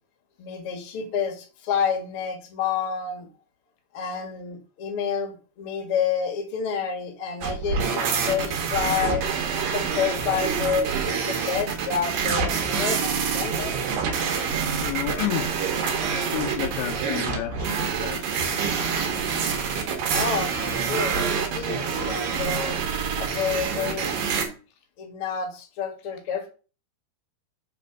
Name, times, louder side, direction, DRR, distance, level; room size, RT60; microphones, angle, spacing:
voice 1, 0.4-3.3 3.9-9.3 9.7-13.7 20.1-22.8 23.2-24.2 25.0-26.5, left 7 dB, 50° left, 1.7 m, -29 dB
sound 1, 7.4-24.4, right 6 dB, 65° right, 2.8 m, -26 dB
voice 2, 14.7-15.9 16.2-18.8, left 12 dB, 80° left, 2.4 m, -32 dB
6.0 x 4.1 x 5.9 m
omnidirectional pair, 4.7 m